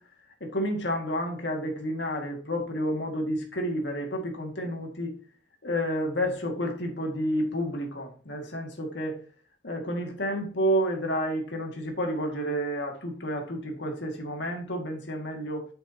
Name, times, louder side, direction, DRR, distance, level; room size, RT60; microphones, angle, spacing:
voice 1, 0.4-5.1 5.6-9.2 9.6-15.7, equal, 65° left, 2 dB, 2.2 m, -30 dB
9.0 x 7.0 x 2.9 m, 0.40 s
head